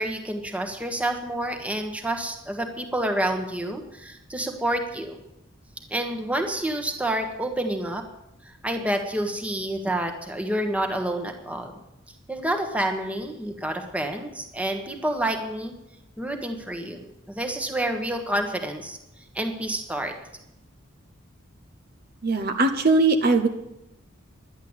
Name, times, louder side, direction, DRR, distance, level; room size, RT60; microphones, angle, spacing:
voice 1, 0.0-5.2 5.9-8.0 8.4-11.7 12.3-15.7 16.2-19.0 19.3-20.1, right 1 dB, 5° right, 4 dB, 1.4 m, -28 dB
voice 2, 22.2-23.5, right 3 dB, 50° right, 5 dB, 0.9 m, -20 dB
11.0 x 10.5 x 8.1 m, 0.86 s
head